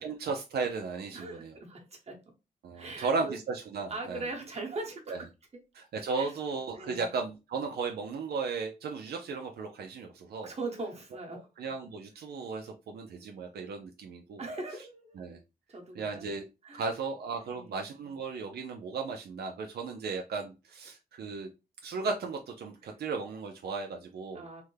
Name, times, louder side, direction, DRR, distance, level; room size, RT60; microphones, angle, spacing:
voice 1, 0.0-1.6 2.6-4.2 5.1-5.2 5.7-10.5 11.6-14.4 15.2-15.4 16.0-16.5 16.7-21.5 21.8-24.5, right 4 dB, 80° right, 0.5 m, -35 dB
voice 2, 1.1-2.2 2.7-3.4 3.9-5.3 6.1-6.3 6.7-7.1 10.4-11.5 14.4-15.2 15.7-16.2 16.6-16.8 17.4-17.7 24.3-24.6, right 2 dB, 40° right, 1.2 m, -40 dB
3.4 x 2.1 x 3.2 m
wide cardioid pair, 110°, 16 cm